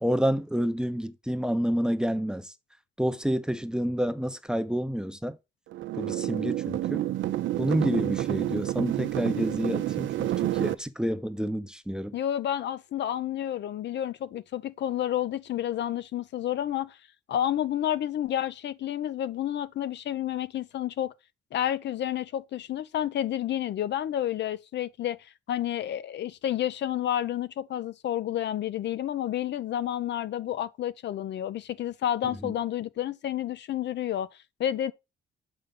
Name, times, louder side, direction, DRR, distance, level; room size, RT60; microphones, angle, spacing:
voice 1, 0.0-2.5 3.0-5.4 6.0-7.0 7.6-12.2 32.4-32.5, equal, 5° right, 0.7 m, -29 dB
sound 1, 5.7-10.7, right 14 dB, 75° right, 0.6 m, -29 dB
voice 2, 12.1-17.0 17.3-21.1 21.5-34.3 34.6-34.9, left 11 dB, 60° left, 0.6 m, -30 dB
6.6 x 5.2 x 3.7 m
cardioid pair, 90°, 20 cm